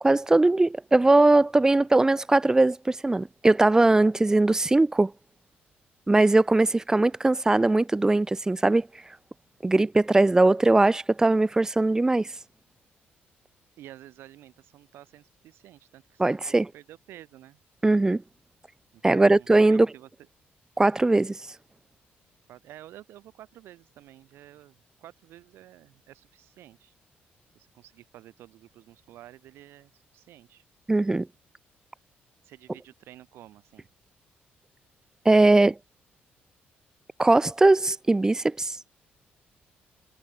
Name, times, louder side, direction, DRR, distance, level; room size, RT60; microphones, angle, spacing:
voice 1, 0.0-5.1 6.1-8.9 9.6-12.3 16.2-16.7 17.8-18.2 19.0-19.9 20.8-21.4 30.9-31.3 35.2-35.8 37.2-38.8, right 2 dB, 15° right, 0.7 m, -20 dB
voice 2, 13.8-17.6 18.9-20.1 22.5-26.9 27.5-30.6 32.4-33.9, right 13 dB, 85° right, 6.4 m, -50 dB
cardioid pair, 90°, 4 cm